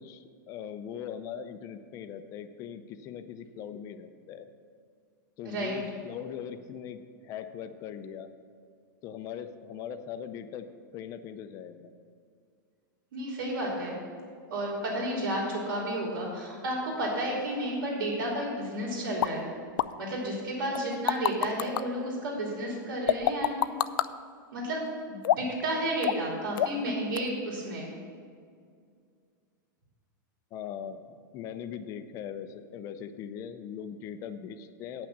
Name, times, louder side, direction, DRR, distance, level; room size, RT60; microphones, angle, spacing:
voice 1, 0.0-4.5 5.4-8.3 9.0-10.7 10.9-11.9 30.5-35.1, left 8 dB, 30° left, 10 dB, 0.5 m, -40 dB
voice 2, 5.4-5.8 13.1-14.0 14.5-19.5 20.0-23.6 24.5-24.8 25.1-27.9, right 1 dB, 90° right, -3 dB, 3.0 m, -32 dB
sound 1, 19.2-19.3 19.8-19.9 20.8-21.8 23.1-24.1 25.2-25.6 26.0-26.3 26.6-26.9 27.2-27.3, left 12 dB, 80° left, 0.4 m, -26 dB
9.5 x 6.0 x 7.3 m, 2.2 s
supercardioid pair, 155°, 11 cm